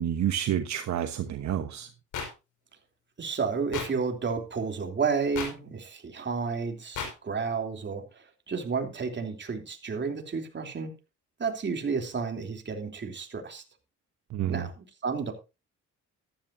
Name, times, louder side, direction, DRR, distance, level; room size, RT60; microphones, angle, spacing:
voice 1, 0.0-1.9 14.3-14.7, right 10 dB, 65° right, 1.1 m, -29 dB
sound 1, 2.1-2.3 3.7-3.9 5.3-5.5 6.9-7.1, left 6 dB, 80° left, 5.0 m, -32 dB
voice 2, 3.2-10.9 11.4-13.6 14.5-15.3, right 5 dB, 40° right, 3.1 m, -31 dB
14.5 x 12.0 x 2.7 m
cardioid pair, 90°, 30 cm